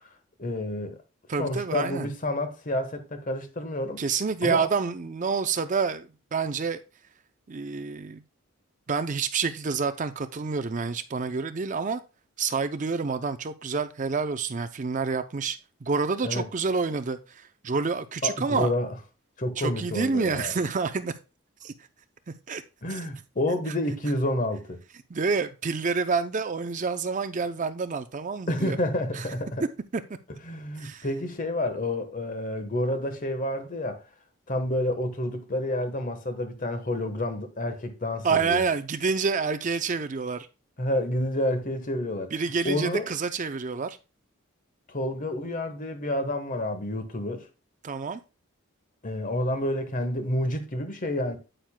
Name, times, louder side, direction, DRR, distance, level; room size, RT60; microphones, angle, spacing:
voice 1, 0.4-1.0 1.4-4.1 4.4-4.7 16.2-16.5 18.2-18.9 19.4-20.5 22.8-24.8 28.5-29.6 30.4-34.0 34.5-38.6 40.8-42.3 42.6-43.1 44.9-47.5 49.0-51.4, left 1 dB, 40° left, 1.2 m, -29 dB
voice 2, 1.3-2.1 4.0-6.8 7.5-8.2 8.9-12.0 12.4-18.7 19.6-21.1 21.6-21.7 22.5-22.6 25.1-28.8 29.1-29.3 30.8-31.1 38.2-40.5 42.3-44.0 47.8-48.2, right 5 dB, 35° right, 0.5 m, -28 dB
9.1 x 9.0 x 2.2 m
head